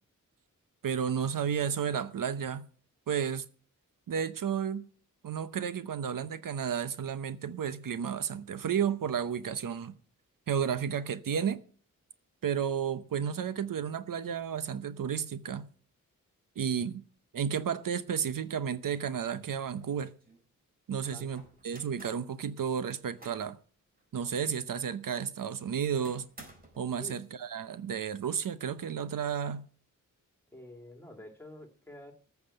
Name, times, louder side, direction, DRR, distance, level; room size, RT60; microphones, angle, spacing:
voice 1, 0.8-2.7 3.1-3.4 4.1-4.8 5.2-10.0 10.5-11.6 12.4-15.7 16.6-17.0 17.3-20.1 20.9-23.6 24.1-26.2 26.8-29.7, right 7 dB, 75° right, 0.8 m, -32 dB
sound 1, 19.7-20.4 21.3-22.3 22.8-23.5 24.0-24.1 24.5-24.6 26.0-26.9, right 1 dB, 25° right, 4.3 m, -53 dB
voice 2, 30.5-32.1, left 1 dB, 5° left, 2.5 m, -48 dB
14.5 x 6.0 x 8.8 m
wide cardioid pair, 145°, 33 cm